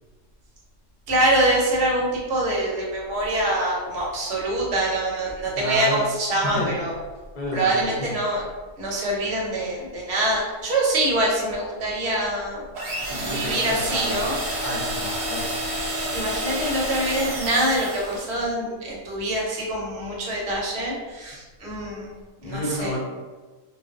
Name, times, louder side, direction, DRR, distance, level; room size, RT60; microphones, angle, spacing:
voice 1, 1.1-6.9 7.5-8.4 8.8-12.7 13.2-14.4 16.1-22.1 22.4-22.9, right 1 dB, 60° right, -3 dB, 0.9 m, -25 dB
voice 2, 5.5-6.0 6.4-6.8 7.3-8.1 13.1-14.2 14.6-15.5 22.4-23.0, left 1 dB, 40° left, -6 dB, 0.8 m, -30 dB
sound 1, 12.7-18.4, right 1 dB, 85° right, 1.0 m, -29 dB
2.4 x 2.2 x 2.4 m, 1.3 s
omnidirectional pair, 1.3 m